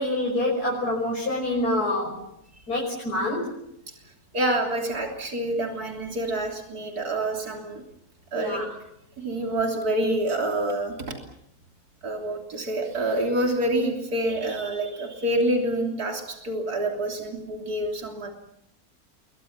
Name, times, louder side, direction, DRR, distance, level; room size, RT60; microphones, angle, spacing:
voice 1, 0.0-2.2 2.7-3.5 8.3-8.7, left 1 dB, 80° left, -1 dB, 6.4 m, -26 dB
voice 2, 4.3-7.8 8.3-8.6 9.2-10.9 12.0-18.3, right 1 dB, 75° right, 2 dB, 3.8 m, -27 dB
28.5 x 23.0 x 7.4 m, 0.75 s
omnidirectional pair, 1.6 m